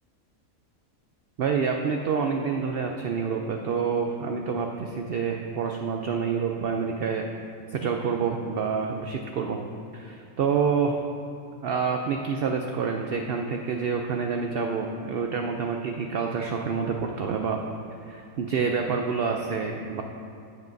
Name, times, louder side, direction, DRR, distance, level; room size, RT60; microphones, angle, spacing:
voice 1, 1.4-7.2 7.7-9.6 9.9-11.0 11.6-17.6 18.1-20.0, right 5 dB, 65° right, 3 dB, 0.6 m, -27 dB
14.5 x 7.4 x 2.6 m, 2.4 s
omnidirectional pair, 1.5 m